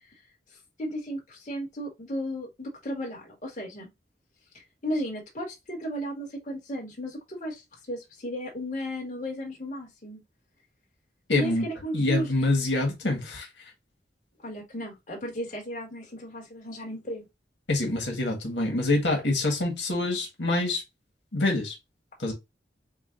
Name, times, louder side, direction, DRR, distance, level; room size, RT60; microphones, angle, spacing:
voice 1, 0.8-3.9 4.5-7.6 7.9-10.2 11.3-12.3 14.4-17.2, equal, 45° left, 2.1 m, -34 dB
voice 2, 11.3-11.6 11.9-13.5 17.7-20.8 21.3-21.7 22.2-22.3, left 2 dB, 90° left, 1.7 m, -26 dB
7.0 x 2.5 x 2.6 m
head